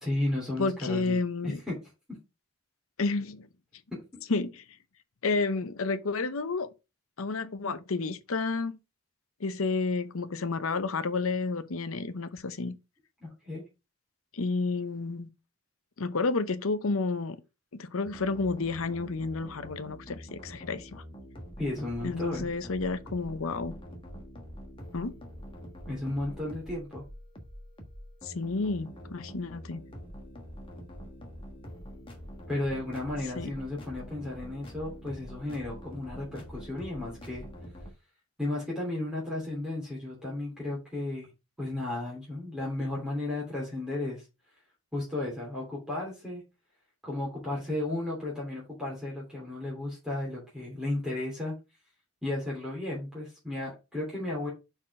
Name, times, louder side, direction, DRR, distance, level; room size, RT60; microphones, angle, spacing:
voice 1, 0.0-1.2 1.4-1.8 13.2-13.6 21.6-22.4 25.9-27.0 32.5-37.4 38.4-41.3 41.6-44.2 44.9-46.4 47.0-51.5 52.2-54.5, left 2 dB, 5° right, 2.9 m, -34 dB
voice 2, 0.6-1.6 3.0-3.5 4.3-4.6 5.2-6.7 7.2-8.8 9.4-12.8 14.3-15.3 16.0-17.4 17.7-21.0 22.0-23.7 24.9-25.1 28.2-29.8 33.4-33.5, left 3 dB, 70° left, 0.7 m, -30 dB
sound 1, 18.0-37.9, equal, 25° left, 1.3 m, -45 dB
5.8 x 4.5 x 4.8 m
head